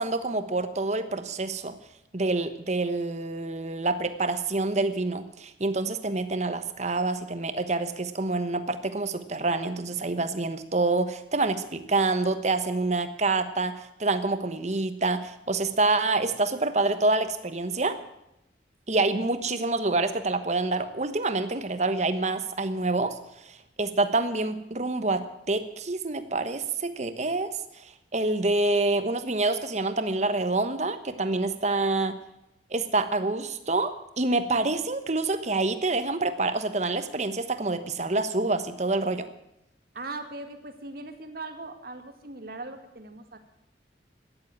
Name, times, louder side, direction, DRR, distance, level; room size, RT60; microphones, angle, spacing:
voice 1, 0.0-1.8 2.1-18.0 18.9-23.2 23.4-27.5 27.8-32.2 32.7-39.3, right 2 dB, 40° right, 10 dB, 1.1 m, -27 dB
voice 2, 39.9-43.4, right 2 dB, 55° right, 6 dB, 2.0 m, -39 dB
13.5 x 10.5 x 9.0 m, 0.85 s
head